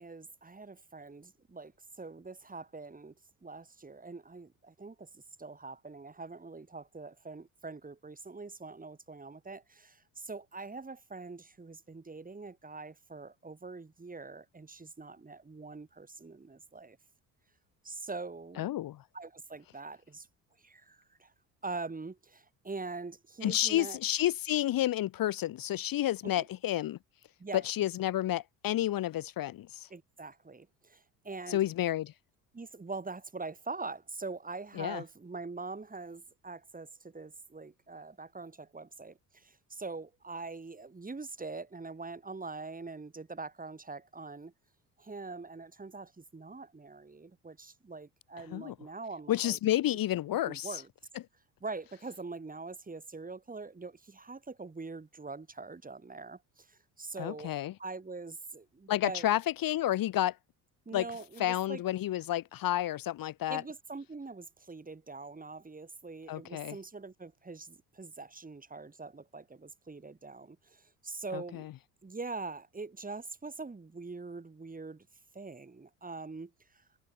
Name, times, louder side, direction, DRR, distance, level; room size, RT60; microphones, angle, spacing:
voice 1, 0.0-1.7 2.0-3.1 3.4-5.1 5.4-17.0 17.8-18.7 19.1-20.3 20.6-21.3 21.6-24.0 26.2-26.3 27.4-27.7 29.9-31.6 32.5-44.5 45.0-49.6 50.4-50.9 51.6-57.5 57.8-59.3 60.9-61.8 63.5-71.7 72.0-75.1 75.3-76.5, right 3 dB, 20° right, 2.6 m, -43 dB
voice 2, 18.6-19.0 23.4-27.0 27.6-29.9 31.5-32.1 34.8-35.0 48.5-48.7 49.3-50.7 57.2-57.7 58.9-60.3 60.9-61.0 61.4-63.6 66.3-66.7 71.3-71.6, left 13 dB, 50° left, 1.1 m, -30 dB
hypercardioid pair, 60°, 45 cm